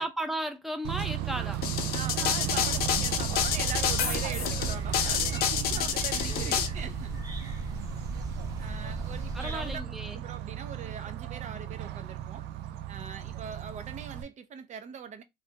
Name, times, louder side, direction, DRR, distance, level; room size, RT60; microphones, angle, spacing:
voice 1, 0.0-1.6 6.3-6.6 9.3-10.2, right 1 dB, ahead, 0.6 m, -35 dB
Bird / Train, 0.8-14.2, right 11 dB, 85° right, 0.4 m, -35 dB
sound 1, 1.6-6.7, left 8 dB, 65° left, 0.6 m, -28 dB
voice 2, 1.9-7.2 8.6-9.8 10.2-12.5 12.9-15.2, right 7 dB, 45° right, 0.6 m, -41 dB
sound 2, 2.7-9.8, right 1 dB, 20° right, 0.9 m, -37 dB
3.2 x 2.1 x 2.8 m
cardioid pair, 110°, 17 cm